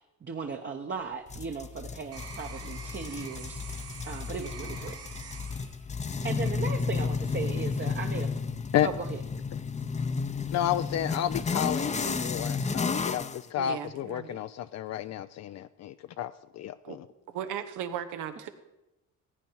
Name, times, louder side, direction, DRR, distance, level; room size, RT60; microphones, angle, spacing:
voice 1, 0.2-5.0 6.2-8.3 8.8-9.2, right 5 dB, 40° right, 3 dB, 1.0 m, -37 dB
sound 1, 1.0-7.2 7.7-8.2, right 6 dB, 55° right, 1.3 m, -47 dB
sound 2, 1.3-13.4, left 5 dB, 25° left, 0.6 m, -32 dB
voice 2, 10.5-17.0, left 11 dB, 60° left, 11 dB, 0.5 m, -31 dB
voice 3, 13.6-14.4 16.8-17.0 17.3-18.5, right 9 dB, 90° right, 9 dB, 1.1 m, -37 dB
16.0 x 8.8 x 4.6 m, 0.96 s
cardioid pair, 90°, 30 cm